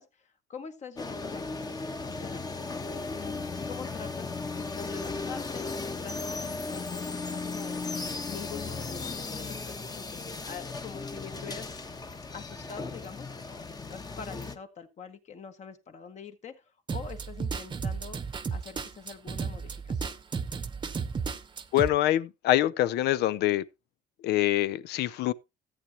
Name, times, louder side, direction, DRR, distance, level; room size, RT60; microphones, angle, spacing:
voice 1, 0.0-2.6 3.0-7.9 8.2-11.8 12.3-20.2, left 6 dB, 45° left, 1.6 m, -45 dB
sound 1, 1.0-14.6, left 3 dB, 25° left, 1.1 m, -36 dB
sound 2, 16.9-21.9, right 5 dB, 25° right, 0.9 m, -33 dB
voice 2, 21.7-23.6 24.2-25.3, left 14 dB, 80° left, 0.6 m, -25 dB
14.5 x 8.6 x 2.9 m
cardioid pair, 110°, 17 cm